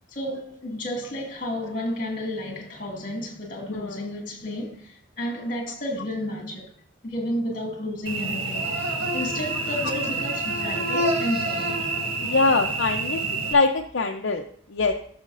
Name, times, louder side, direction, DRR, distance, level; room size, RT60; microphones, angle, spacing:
voice 1, 0.1-6.7 7.0-11.9, left 1 dB, 40° left, 2.2 m, -32 dB
Cricket / Buzz, 8.1-13.5, right 2 dB, 75° right, 1.6 m, -27 dB
voice 2, 12.2-13.2 13.5-14.4 14.7-14.9, left 3 dB, 65° left, 0.6 m, -23 dB
14.5 x 6.4 x 2.6 m
head